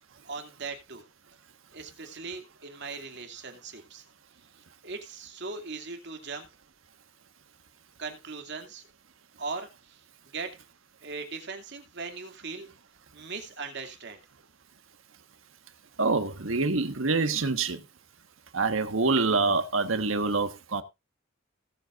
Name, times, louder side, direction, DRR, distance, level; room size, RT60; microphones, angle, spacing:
voice 1, 0.2-1.0 1.7-4.0 4.8-6.5 8.0-8.8 9.4-10.0 10.3-10.6 11.0-12.7 13.1-14.2, right 4 dB, 60° right, 2.5 m, -39 dB
voice 2, 16.0-17.8 18.5-20.8, right 3 dB, 85° right, 1.4 m, -26 dB
19.0 x 8.0 x 2.5 m
head